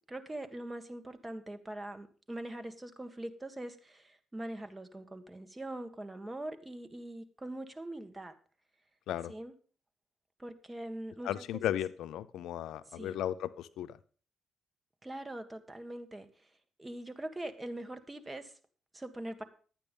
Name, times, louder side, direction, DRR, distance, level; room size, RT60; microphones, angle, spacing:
voice 1, 0.1-8.3 9.3-9.5 10.4-11.4 12.9-13.2 15.0-16.3 16.8-18.5 18.9-19.4, right 1 dB, 15° right, 8 dB, 1.6 m, -42 dB
voice 2, 11.2-14.0, left 11 dB, 80° left, 14 dB, 0.6 m, -35 dB
12.0 x 9.0 x 5.3 m, 0.41 s
cardioid pair, 90°, 0 cm